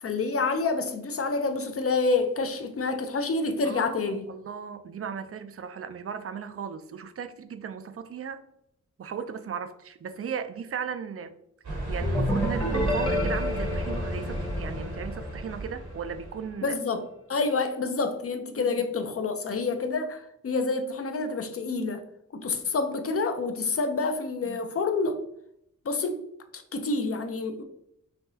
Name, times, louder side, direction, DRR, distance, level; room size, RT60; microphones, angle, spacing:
voice 1, 0.0-4.3 16.6-17.0 17.3-22.0 22.3-25.2 25.8-26.2 26.5-27.6, left 3 dB, 50° left, 0.6 m, -28 dB
voice 2, 3.6-8.4 9.0-11.4 11.9-16.8 18.6-18.8 24.4-24.6, right 7 dB, 50° right, 0.4 m, -36 dB
sound 1, 11.6-16.5, right 2 dB, 90° right, 1.6 m, -33 dB
sound 2, 12.0-15.7, left 1 dB, 15° left, 0.9 m, -30 dB
5.8 x 2.9 x 2.7 m
wide cardioid pair, 105°, 30 cm